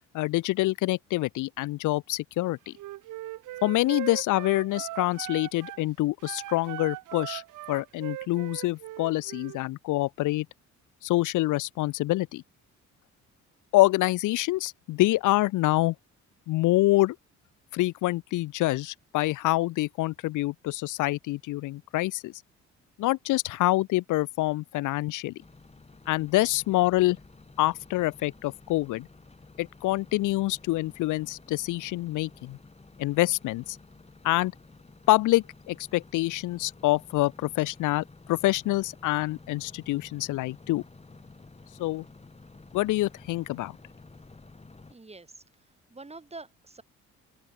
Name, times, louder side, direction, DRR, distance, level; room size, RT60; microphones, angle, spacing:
voice 1, 0.1-2.7 3.6-7.4 7.7-10.5 11.0-12.4 13.7-15.9 16.5-17.2 17.7-22.3 23.0-25.4 26.1-27.2 27.6-29.1 29.6-32.6 33.0-33.8 34.2-34.5 35.1-40.8 41.8-42.0 42.7-43.8, left 18 dB, 80° left, 0.6 m, -26 dB
Wind instrument woodwind instrument, 2.7-5.8 6.2-9.6, right 16 dB, 90° right, 2.4 m, -39 dB
sound 1, 25.4-44.9, left 3 dB, 20° left, 5.8 m, -52 dB
voice 2, 44.9-46.8, right 3 dB, 20° right, 5.5 m, -46 dB
open air
cardioid pair, 90°, 30 cm